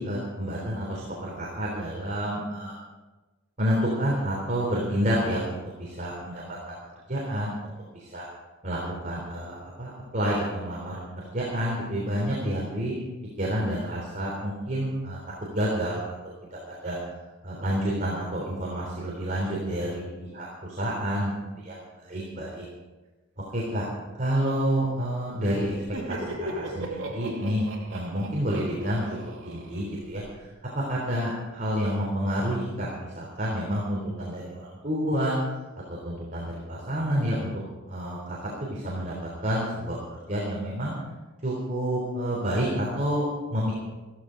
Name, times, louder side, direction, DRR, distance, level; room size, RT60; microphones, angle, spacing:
voice 1, 0.0-2.8 3.6-6.6 7.1-8.3 8.6-8.8 9.0-12.9 13.4-15.2 15.5-16.0 16.7-17.0 17.4-21.8 22.1-22.7 23.5-23.8 24.1-25.7 26.1-27.7 27.9-29.0 29.4-30.5 30.7-35.3 35.9-37.5 37.9-40.0 40.3-40.9 41.4-43.7, equal, 40° right, -4 dB, 3.4 m, -29 dB
Laughter, 25.7-30.4, right 1 dB, 70° right, 2.8 m, -37 dB
15.0 x 14.5 x 5.0 m, 1.2 s
head